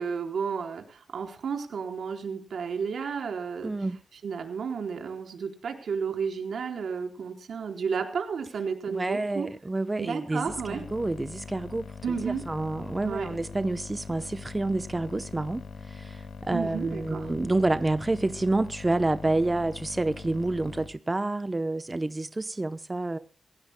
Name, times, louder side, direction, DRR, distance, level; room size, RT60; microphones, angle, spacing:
voice 1, 0.0-3.7 4.2-9.5 10.0-10.8 12.0-12.4 13.0-13.3 16.5-17.3, right 6 dB, 90° right, 4.0 m, -32 dB
voice 2, 3.6-4.0 8.9-11.9 12.2-23.2, right 2 dB, 20° right, 0.7 m, -28 dB
sound 1, 10.5-20.9, left 6 dB, 80° left, 1.7 m, -42 dB
27.0 x 16.5 x 2.2 m
wide cardioid pair, 145°, 0 cm